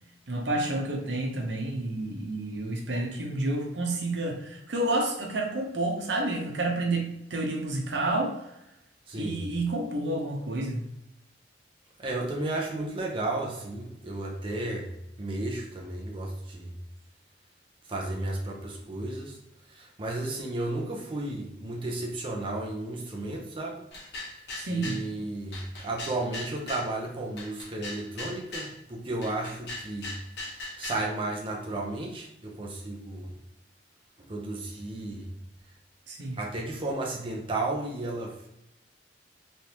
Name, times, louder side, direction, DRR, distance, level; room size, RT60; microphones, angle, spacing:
voice 1, 0.3-8.4 9.1-10.9 24.5-25.0 36.1-36.4, right 2 dB, 85° right, 1 dB, 0.8 m, -30 dB
voice 2, 9.1-9.4 12.0-14.9 15.2-16.7 17.9-19.4 19.7-23.8 24.7-30.2 30.6-33.3 34.2-35.3 36.4-38.5, right 2 dB, 30° right, -1 dB, 0.6 m, -33 dB
sound 1, 23.9-25.0 25.5-26.9 27.4-28.7 29.2-31.1, left 2 dB, 65° left, 1.2 m, -39 dB
3.3 x 3.2 x 2.9 m, 0.84 s
head